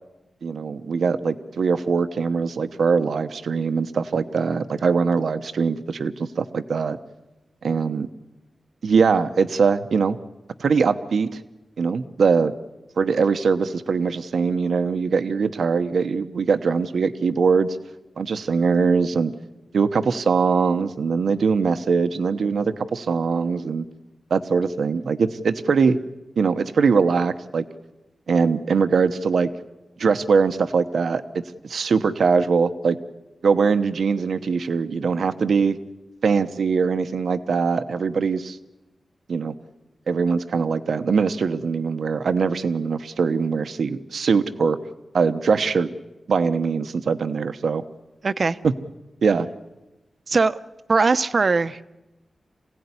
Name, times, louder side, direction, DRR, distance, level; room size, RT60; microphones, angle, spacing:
voice 1, 0.4-7.0 7.6-8.1 8.8-10.2 10.6-11.3 11.8-12.5 13.0-17.8 18.2-19.3 19.7-23.8 24.3-26.0 26.4-27.6 28.3-29.5 30.0-31.2 31.6-33.0 33.4-35.8 36.2-38.6 39.3-39.5 40.1-44.8 45.1-45.9 46.3-47.8 48.6-48.7 49.2-49.5, right 5 dB, 90° right, 9 dB, 1.0 m, -22 dB
voice 2, 48.2-48.6 50.3-50.6 50.9-51.8, right 4 dB, 50° right, 12 dB, 0.8 m, -20 dB
26.5 x 17.0 x 9.8 m, 1.0 s
wide cardioid pair, 130°, 0 cm